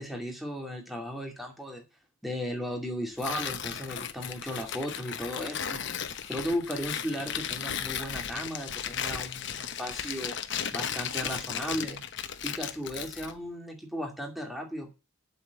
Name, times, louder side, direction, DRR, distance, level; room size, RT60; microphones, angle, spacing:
voice 1, 0.0-1.8 2.2-12.0 12.4-14.9, equal, ahead, 1 dB, 2.4 m, -36 dB
Tearing, 3.2-13.4, left 8 dB, 55° left, 1.0 m, -35 dB
8.2 x 7.2 x 8.4 m, 0.30 s
head